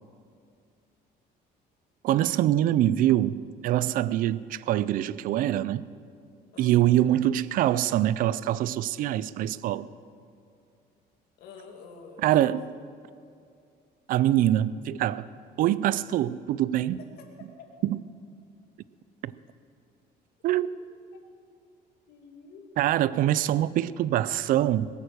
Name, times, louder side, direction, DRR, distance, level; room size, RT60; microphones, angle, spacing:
voice 1, 2.0-5.9 6.6-9.9 12.2-12.6 14.1-15.3 15.6-17.0 17.8-18.0 19.2-19.3 20.4-20.7 22.8-24.9, right 13 dB, 50° right, 0.4 m, -24 dB
voice 2, 6.5-7.0 11.4-12.5 17.6-17.7 20.5-20.7 21.1-21.2 22.1-22.7, left 5 dB, 65° left, 2.4 m, -48 dB
21.0 x 8.9 x 6.8 m
cardioid pair, 170°, 18 cm